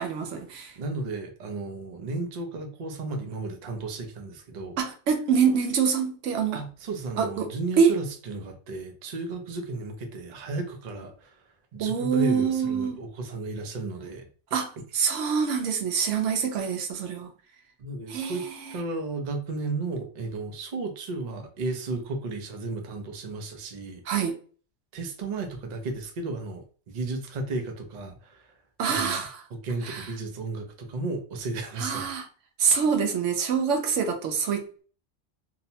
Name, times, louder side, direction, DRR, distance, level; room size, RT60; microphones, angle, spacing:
voice 1, 0.0-0.7 4.8-6.6 7.2-7.5 7.8-7.9 11.8-13.0 14.5-17.3 18.1-18.3 18.7-18.8 24.1-24.4 28.8-29.4 29.8-30.1 31.8-32.3 32.6-34.8, right 6 dB, 85° right, 1.0 m, -25 dB
voice 2, 0.8-4.8 6.5-11.4 11.7-14.3 17.8-18.5 18.7-24.0 24.9-28.5 28.9-29.2 29.6-32.1, right 3 dB, 50° right, 0.5 m, -34 dB
2.7 x 2.0 x 2.7 m
omnidirectional pair, 1.2 m